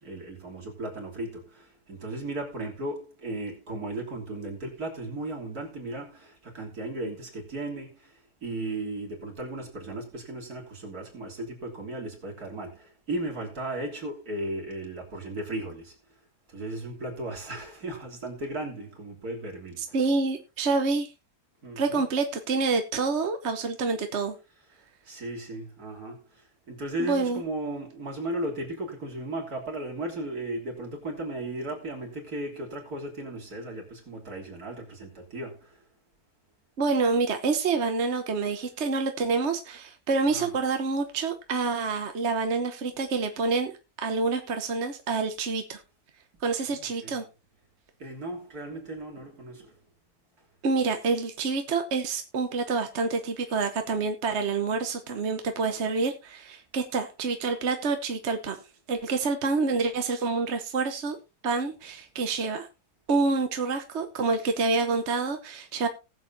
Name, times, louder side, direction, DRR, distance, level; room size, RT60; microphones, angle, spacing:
voice 1, 0.0-8.0 8.4-15.9 16.5-20.1 21.6-22.0 25.1-26.2 26.7-35.6 40.3-40.5 46.7-47.2 48.0-49.7, right 1 dB, 65° right, 3.8 m, -36 dB
voice 2, 19.8-21.1 21.8-24.3 27.0-27.4 36.8-43.7 44.0-45.8 46.4-47.2 50.6-58.6 58.9-61.2 61.4-62.7 63.1-65.9, right 4 dB, 50° right, 1.2 m, -27 dB
19.5 x 7.4 x 2.7 m
omnidirectional pair, 1.7 m